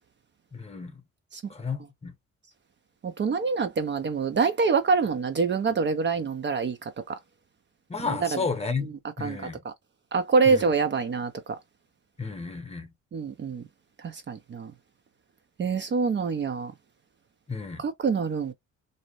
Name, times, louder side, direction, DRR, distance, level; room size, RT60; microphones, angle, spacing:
voice 1, 0.5-1.0 1.5-2.1 7.9-8.9 9.2-9.6 10.5-10.7 12.2-12.9 17.5-17.8, left 4 dB, 20° left, 0.9 m, -32 dB
voice 2, 3.0-6.8 7.1-7.2 8.2-8.4 9.2-9.4 10.1-11.3 13.1-13.6 14.0-14.7 15.6-16.7 17.8-18.5, right 5 dB, 40° right, 0.5 m, -25 dB
2.7 x 2.0 x 3.0 m
cardioid pair, 90°, 30 cm